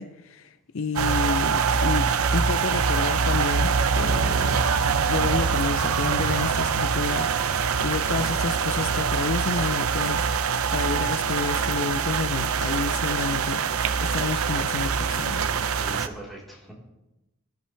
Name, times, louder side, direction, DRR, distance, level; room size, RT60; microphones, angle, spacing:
voice 1, 0.0-4.6 5.1-10.2 10.7-13.6 14.0-15.5, left 4 dB, 65° left, 0.6 m, -30 dB
sound 1, 1.0-16.1, right 6 dB, 85° right, 0.7 m, -24 dB
voice 2, 15.8-16.7, right 1 dB, ahead, 3.9 m, -42 dB
19.5 x 13.0 x 3.3 m
head